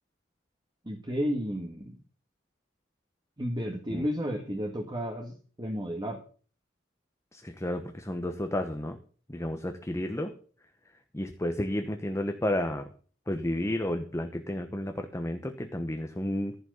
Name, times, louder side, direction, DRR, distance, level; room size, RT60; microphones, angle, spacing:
voice 1, 0.9-2.0 3.4-6.2, equal, 25° right, 2 dB, 1.7 m, -32 dB
voice 2, 7.3-9.0 9.3-10.3 11.1-12.9 13.3-16.6, left 1 dB, 15° left, 6 dB, 1.1 m, -32 dB
14.5 x 6.1 x 8.0 m, 0.42 s
head